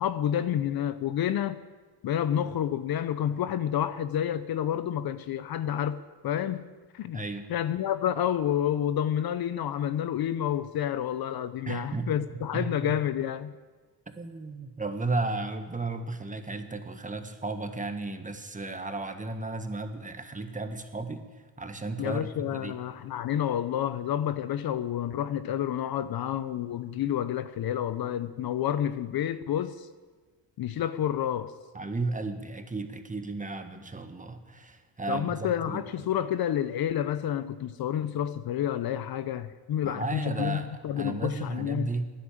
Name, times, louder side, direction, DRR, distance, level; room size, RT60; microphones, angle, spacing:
voice 1, 0.0-1.6 2.0-6.0 6.2-6.6 6.9-7.2 7.5-13.5 22.0-29.9 30.6-31.5 35.1-41.9, left 10 dB, 55° left, 0.8 m, -29 dB
voice 2, 7.1-7.5 11.7-12.9 14.2-21.2 21.6-22.7 31.7-35.9 39.8-42.0, right 3 dB, 15° right, 1.5 m, -34 dB
12.5 x 10.0 x 8.6 m
supercardioid pair, 75°, 44 cm